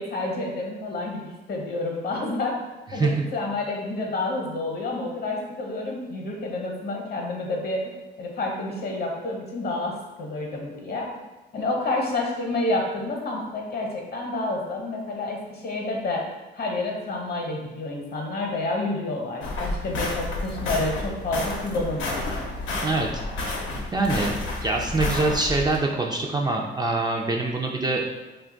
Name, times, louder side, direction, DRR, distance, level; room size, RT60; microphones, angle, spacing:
voice 1, 0.0-2.6 2.9-7.8 8.2-11.1 11.5-16.2 16.5-22.4, left 2 dB, 55° left, 0 dB, 0.8 m, -29 dB
voice 2, 2.9-3.3 22.8-23.6 23.9-28.0, right 3 dB, 20° right, 0 dB, 0.4 m, -25 dB
sound 1, 19.4-25.8, left 2 dB, 85° left, 0.7 m, -30 dB
2.7 x 2.3 x 3.8 m, 1.2 s
cardioid pair, 90°, 20 cm